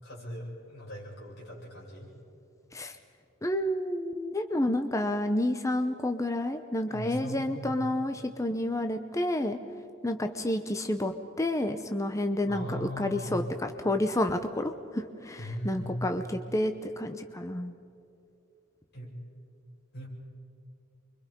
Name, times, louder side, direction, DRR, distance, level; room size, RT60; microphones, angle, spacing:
voice 1, 0.0-2.1 6.9-7.9 12.5-13.5 15.4-16.0 18.9-19.1 19.9-20.1, equal, 55° left, -4 dB, 7.9 m, -39 dB
voice 2, 3.4-9.6 10.0-17.7, left 1 dB, 15° left, 6 dB, 0.8 m, -30 dB
29.0 x 24.0 x 5.4 m, 2.6 s
head